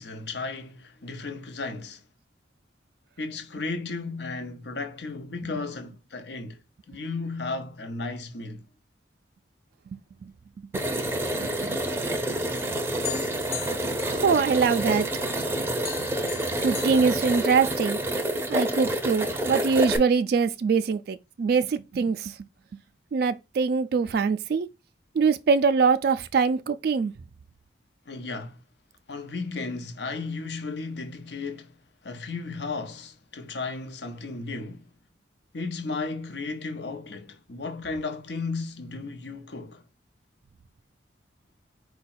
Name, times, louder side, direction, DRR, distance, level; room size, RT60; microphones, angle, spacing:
voice 1, 0.0-2.0 3.2-6.6 6.9-8.7 28.1-28.6 29.1-31.8 32.0-34.9 35.5-39.8, left 3 dB, 65° left, 0.7 m, -34 dB
sound 1, 10.7-20.0, right 1 dB, 15° right, 0.6 m, -28 dB
voice 2, 11.1-11.8 14.0-15.1 16.6-18.0 18.5-22.3 23.1-24.7 25.1-27.1, right 5 dB, 55° right, 0.3 m, -23 dB
sound 2, 13.0-15.0 15.4-17.9, left 11 dB, 35° left, 0.4 m, -40 dB
4.7 x 2.2 x 4.1 m
head